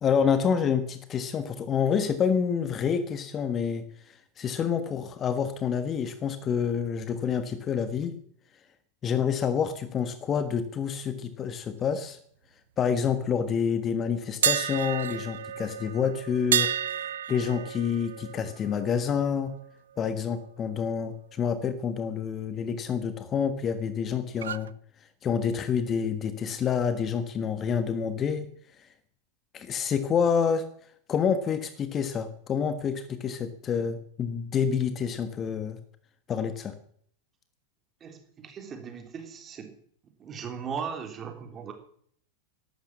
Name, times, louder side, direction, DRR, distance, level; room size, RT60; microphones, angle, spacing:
voice 1, 0.0-8.2 9.0-12.2 12.8-16.7 17.0-19.5 20.0-24.7 25.2-28.5 28.8-28.9 29.5-30.7 31.1-35.8 36.3-36.7, left 7 dB, 25° left, 11 dB, 1.4 m, -28 dB
sound 1, 14.4-20.3 20.6-20.9 24.4-24.7, right 9 dB, 65° right, 0.6 m, -31 dB
voice 2, 38.0-39.8 40.2-41.7, right 6 dB, 25° right, 5 dB, 3.3 m, -38 dB
13.5 x 12.0 x 7.3 m, 0.63 s
figure-of-eight pair, 90°, 0 cm